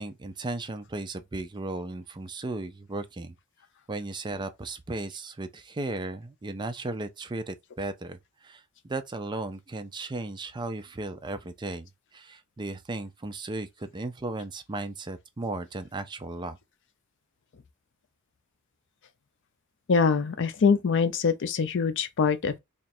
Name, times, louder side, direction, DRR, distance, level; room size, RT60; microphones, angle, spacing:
voice 1, 0.0-3.4 3.9-16.6, right 2 dB, 20° right, 0.4 m, -35 dB
voice 2, 19.9-22.6, left 5 dB, 60° left, 0.5 m, -24 dB
3.0 x 2.4 x 4.2 m
head